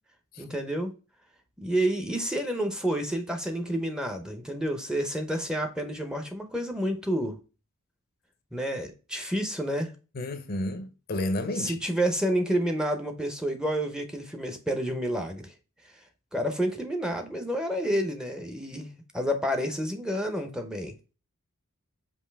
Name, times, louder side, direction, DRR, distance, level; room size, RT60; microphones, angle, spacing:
voice 1, 0.4-0.9 1.6-7.4 8.5-9.9 11.5-15.5 16.3-18.9 19.1-21.0, equal, 5° right, 0.6 m, -29 dB
voice 2, 10.1-11.8, left 1 dB, 45° left, 0.6 m, -31 dB
5.3 x 2.6 x 3.3 m
head